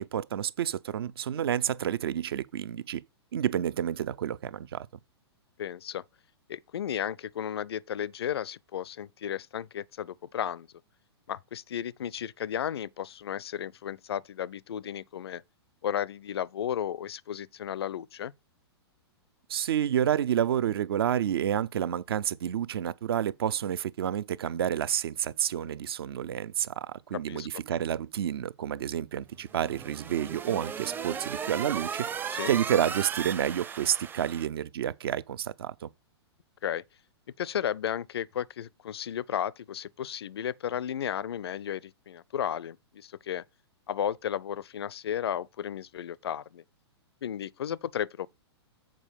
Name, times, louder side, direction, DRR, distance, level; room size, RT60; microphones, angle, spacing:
voice 1, 0.0-3.0 3.3-4.9 19.5-32.1 32.5-35.9, right 10 dB, 60° right, 0.6 m, -29 dB
voice 2, 5.6-6.0 6.5-10.7 11.3-15.4 15.8-18.3 27.1-27.5 32.3-32.5 36.6-36.8 37.4-43.4 43.9-46.6 47.2-48.3, left 9 dB, 65° left, 0.5 m, -34 dB
sound 1, 29.5-34.5, right 7 dB, 15° right, 0.5 m, -36 dB
7.5 x 4.6 x 6.8 m
figure-of-eight pair, 115°, 14 cm